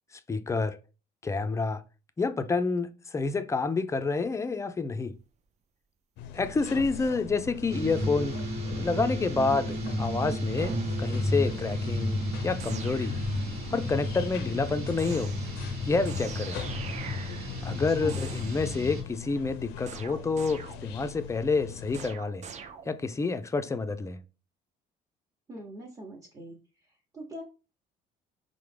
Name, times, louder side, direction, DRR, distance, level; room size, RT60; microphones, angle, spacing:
voice 1, 0.1-0.8 1.2-1.8 2.2-5.1 6.3-13.2 13.7-15.3 15.8-16.6 17.6-22.4 22.9-24.2, left 4 dB, 15° left, 0.3 m, -29 dB
sound 1, 6.2-22.1, left 9 dB, 90° left, 0.4 m, -42 dB
sound 2, 6.8-8.0 8.7-9.1 10.6-11.0 12.6-13.4 15.0-15.7 16.0-17.8 18.1-18.8 19.9-21.1 21.9-23.3, right 6 dB, 45° right, 0.4 m, -44 dB
sound 3, 7.7-19.0, left 1 dB, 65° right, 1.1 m, -32 dB
voice 2, 17.7-18.3 25.5-26.6 27.1-27.4, right 1 dB, 20° right, 0.8 m, -42 dB
4.6 x 2.1 x 3.2 m
cardioid pair, 110°, 17 cm